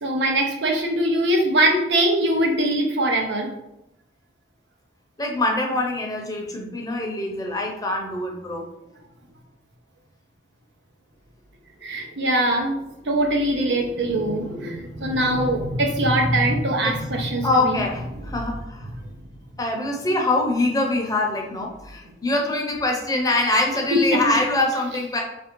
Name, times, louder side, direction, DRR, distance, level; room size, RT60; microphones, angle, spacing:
voice 1, 0.0-3.5 11.8-12.8 13.1-17.8 18.8-19.0 23.9-24.4, right 1 dB, 75° right, 2 dB, 0.8 m, -22 dB
voice 2, 5.2-8.6 16.8-17.0 17.4-18.9 19.6-25.2, left 2 dB, 20° left, 1 dB, 0.7 m, -24 dB
3.3 x 2.6 x 4.4 m, 0.87 s
head